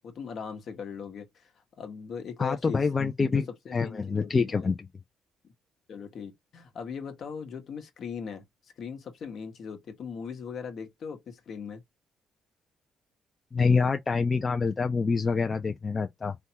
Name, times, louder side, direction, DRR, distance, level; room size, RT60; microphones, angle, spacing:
voice 1, 0.0-1.5 1.8-2.8 3.2-4.7 5.4-5.5 5.9-8.4 8.8-11.8, left 6 dB, 60° left, 1.0 m, -39 dB
voice 2, 2.4-3.5 3.7-4.9 13.5-16.4, left 4 dB, 30° left, 0.4 m, -26 dB
3.4 x 2.2 x 2.8 m
cardioid pair, 85°, 0 cm